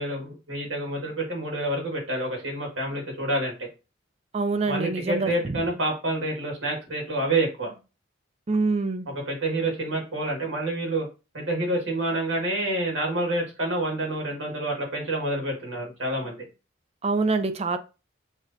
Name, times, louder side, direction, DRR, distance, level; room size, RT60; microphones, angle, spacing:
voice 1, 0.0-3.7 4.7-7.7 9.1-11.1 11.3-16.4, right 1 dB, 75° right, 1.6 m, -28 dB
voice 2, 4.3-5.3 8.5-9.1 17.0-17.8, right 3 dB, 35° right, 0.4 m, -25 dB
6.1 x 2.5 x 2.6 m
head